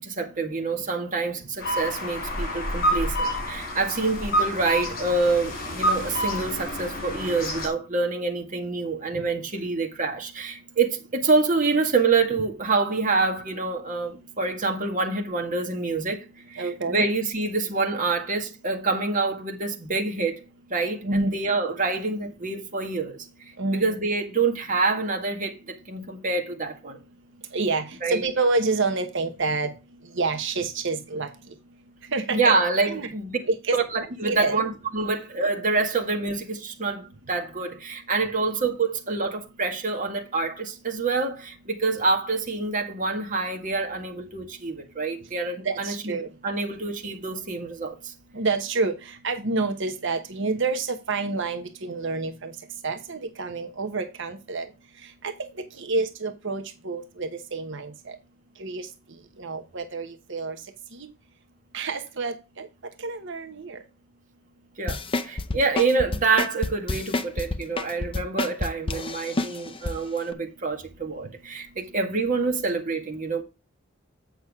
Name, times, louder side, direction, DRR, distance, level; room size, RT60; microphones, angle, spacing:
voice 1, 0.0-16.2 16.5-20.4 20.7-23.2 23.7-27.0 28.0-28.2 32.3-33.4 33.7-46.2 46.4-48.1 64.8-73.4, right 3 dB, 40° right, 1.8 m, -26 dB
sound 1, 1.6-7.7, equal, 45° left, 3.8 m, -28 dB
voice 2, 16.6-17.1 21.0-21.4 23.6-24.0 27.5-29.7 30.1-31.3 32.1-32.5 32.8-33.1 33.4-33.8 34.2-34.6 45.6-46.3 48.3-52.5 52.8-54.7 55.2-55.5 55.7-58.2 58.6-58.9 59.4-60.6 60.9-61.1 61.7-62.7 63.0-63.8, right 3 dB, 60° right, 1.1 m, -28 dB
sound 2, 64.9-69.9 70.3-70.4, left 2 dB, 25° left, 0.6 m, -28 dB
8.2 x 6.2 x 3.6 m
head